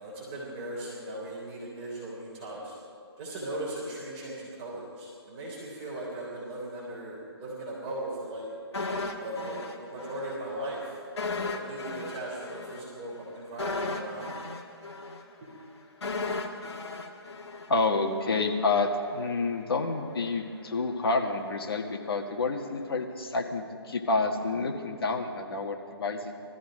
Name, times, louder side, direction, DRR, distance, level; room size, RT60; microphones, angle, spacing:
voice 1, 0.0-2.8 3.2-8.5 9.2-11.0 11.3-14.4, right 1 dB, 25° right, -5 dB, 3.6 m, -38 dB
sound 1, 8.7-10.4 10.6-10.8 11.2-18.2 18.5-18.7, left 3 dB, 80° left, 1.6 m, -35 dB
voice 2, 17.7-26.3, left 3 dB, 60° left, 3 dB, 1.9 m, -29 dB
20.0 x 14.0 x 5.1 m, 2.4 s
hypercardioid pair, 155°, 14 cm